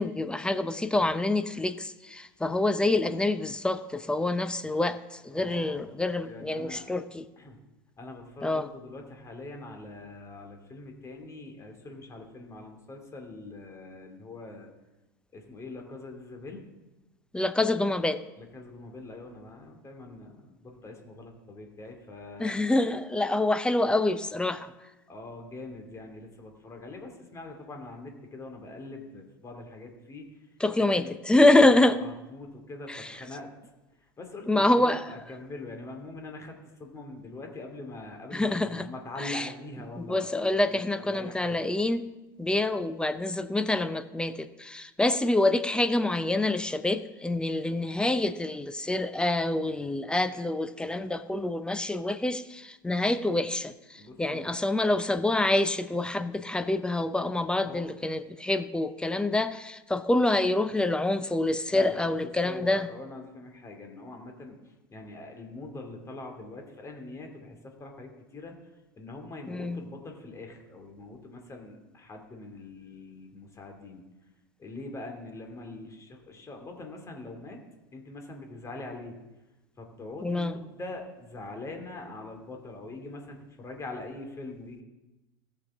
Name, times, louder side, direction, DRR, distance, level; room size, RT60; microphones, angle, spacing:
voice 1, 0.0-7.2 8.4-8.7 17.3-18.2 22.4-24.7 30.6-32.0 32.9-33.1 34.5-35.0 38.3-38.9 39.2-39.5 40.0-42.0 42.4-62.9 69.5-69.8 80.2-80.5, left 2 dB, 10° left, 11 dB, 0.6 m, -26 dB
voice 2, 5.3-5.9 6.2-6.8 7.4-7.6 8.0-14.7 15.3-16.7 18.4-22.6 25.1-30.3 31.0-31.1 31.6-33.5 34.2-41.7 54.0-54.4 57.6-57.8 61.7-62.1 62.4-68.7 69.0-74.0 74.6-77.6 77.9-79.2 79.8-84.8, left 2 dB, 25° left, 3 dB, 2.5 m, -43 dB
17.5 x 6.8 x 3.6 m, 1.0 s
hypercardioid pair, 80°, 11 cm